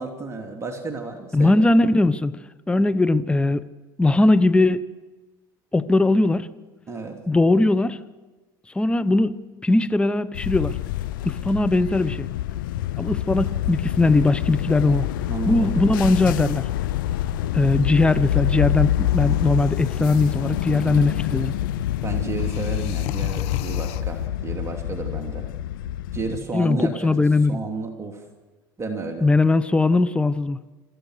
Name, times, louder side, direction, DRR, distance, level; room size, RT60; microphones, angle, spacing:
voice 1, 0.0-1.6 6.9-7.2 15.3-15.8 22.0-25.5 26.1-27.1 27.5-28.2 28.8-29.3, right 3 dB, 25° right, 3 dB, 3.0 m, -32 dB
voice 2, 1.3-2.4 2.7-3.6 4.0-4.9 5.7-6.5 7.3-8.0 8.7-10.8 11.2-12.3 13.0-15.1 15.5-16.6 17.5-21.6 26.5-27.6 29.2-30.6, left 2 dB, 10° left, 14 dB, 0.8 m, -20 dB
sound 1, 10.3-26.4, left 12 dB, 85° left, 0.7 m, -26 dB
sound 2, 19.0-24.3, left 15 dB, 70° left, 1.0 m, -38 dB
28.0 x 14.5 x 6.5 m, 1.2 s
hypercardioid pair, 85°, 11 cm